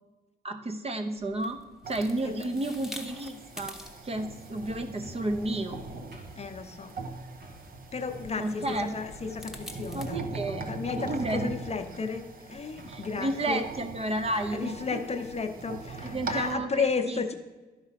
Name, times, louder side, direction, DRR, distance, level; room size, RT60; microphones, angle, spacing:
voice 1, 0.4-1.6 1.9-3.8 4.0-5.8 8.4-8.9 9.9-10.7 11.0-11.5 12.9-15.0 16.0-17.3, right 1 dB, 35° right, 7 dB, 0.8 m, -32 dB
sound 1, 1.2-10.1, left 1 dB, ahead, 1.0 m, -49 dB
sound 2, 1.8-16.6, right 3 dB, 55° right, 0.9 m, -41 dB
sound 3, 4.9-5.4 6.1-6.8 7.4-7.6 8.2-8.3 8.7-9.0 10.0-10.6 10.9-11.0 11.3-11.8 12.7-12.9 13.8-13.9 14.3-14.6, right 1 dB, 80° right, 2.7 m, -50 dB
voice 2, 6.4-6.9 7.9-10.2 10.5-13.6 14.5-17.3, left 5 dB, 40° left, 7 dB, 0.7 m, -33 dB
11.0 x 4.8 x 5.8 m, 1.2 s
cardioid pair, 95°, 17 cm